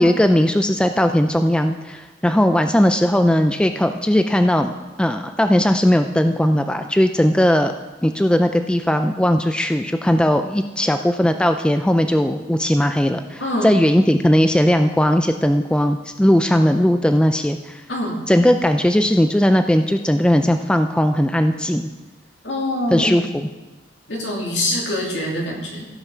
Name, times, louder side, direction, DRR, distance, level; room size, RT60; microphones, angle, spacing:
voice 1, 0.0-4.7 5.0-7.7 8.0-17.8 18.3-21.9 22.9-23.5, equal, 5° left, 7 dB, 0.3 m, -18 dB
voice 2, 13.4-13.7 17.9-18.2 22.4-23.2 24.1-25.9, left 1 dB, 70° left, -2 dB, 2.7 m, -24 dB
15.5 x 5.8 x 5.5 m, 1.1 s
head